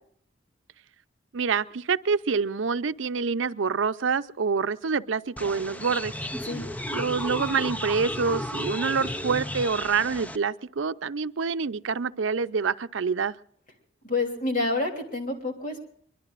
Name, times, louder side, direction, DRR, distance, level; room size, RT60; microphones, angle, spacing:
voice 1, 1.3-6.1 6.9-13.3, right 5 dB, 80° right, 13 dB, 0.6 m, -26 dB
sound 1, 5.4-10.4, left 1 dB, 10° left, 0.5 m, -33 dB
voice 2, 14.0-15.8, left 2 dB, 45° left, 3 dB, 3.1 m, -28 dB
23.5 x 22.0 x 2.5 m, 0.63 s
head